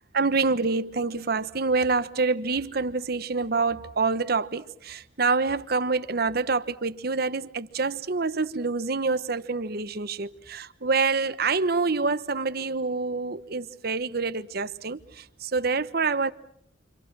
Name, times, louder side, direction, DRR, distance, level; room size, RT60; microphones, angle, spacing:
voice 1, 0.1-16.3, right 4 dB, 60° right, 1.1 m, -26 dB
29.0 x 26.0 x 6.2 m
head